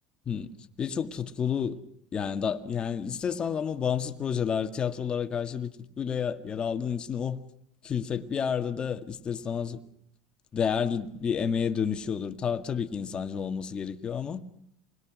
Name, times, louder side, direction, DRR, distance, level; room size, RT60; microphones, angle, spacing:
voice 1, 0.8-1.8 2.1-7.4 7.8-9.8 10.5-14.4, left 7 dB, 30° left, 2.0 m, -30 dB
28.0 x 21.5 x 6.3 m
supercardioid pair, 115°, 3 cm